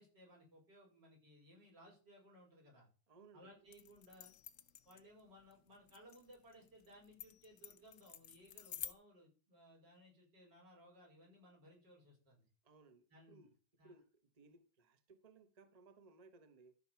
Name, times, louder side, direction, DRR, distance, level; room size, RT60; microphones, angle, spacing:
voice 1, 0.0-2.9 3.3-4.3 4.9-12.5 13.1-13.5 13.8-13.9, equal, 75° right, 5.6 m, -62 dB
voice 2, 3.1-3.5 12.6-13.5 13.8-16.8, right 3 dB, 30° right, 0.9 m, -63 dB
sound 1, 3.7-8.9, left 9 dB, 60° left, 0.9 m, -51 dB
13.5 x 5.8 x 5.8 m
omnidirectional pair, 1.9 m